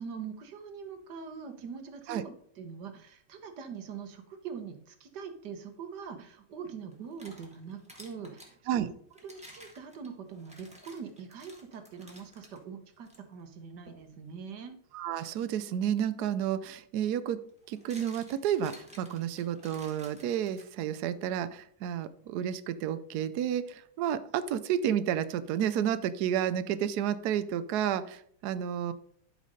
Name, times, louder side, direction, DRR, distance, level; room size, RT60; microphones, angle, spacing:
voice 1, 0.0-8.9 9.2-14.8, right 6 dB, 55° right, 7 dB, 1.5 m, -43 dB
sound 1, 6.9-8.5 9.1-12.6 13.0-13.2 13.9-14.1 16.2-16.3 17.5-21.0, equal, 5° right, 1.7 m, -53 dB
voice 2, 14.9-17.4 17.7-28.9, right 9 dB, 90° right, 13 dB, 0.8 m, -31 dB
11.5 x 5.1 x 5.1 m, 0.63 s
omnidirectional pair, 2.4 m